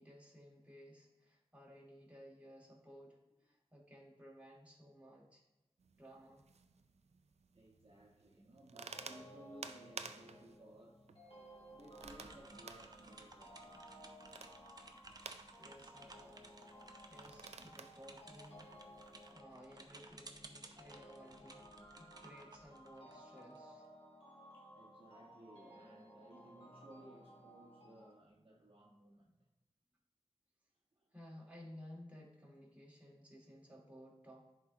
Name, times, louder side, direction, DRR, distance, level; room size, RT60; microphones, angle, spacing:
voice 1, 0.0-5.4 6.0-6.5 15.6-16.4 17.1-18.7 19.3-21.7 22.0-23.8 31.1-34.5, equal, 15° right, -3 dB, 2.0 m, -57 dB
sound 1, 5.8-19.3, right 5 dB, 85° right, 0.4 m, -55 dB
voice 2, 7.5-11.1 11.6-13.9 24.5-29.4 30.9-31.1, right 1 dB, 55° right, -3 dB, 1.2 m, -59 dB
sound 2, 8.9-28.1, equal, 60° left, 2.0 m, -58 dB
sound 3, 12.0-23.6, right 2 dB, 35° right, 0.7 m, -58 dB
10.5 x 4.2 x 2.7 m, 1.0 s
wide cardioid pair, 65°, 11 cm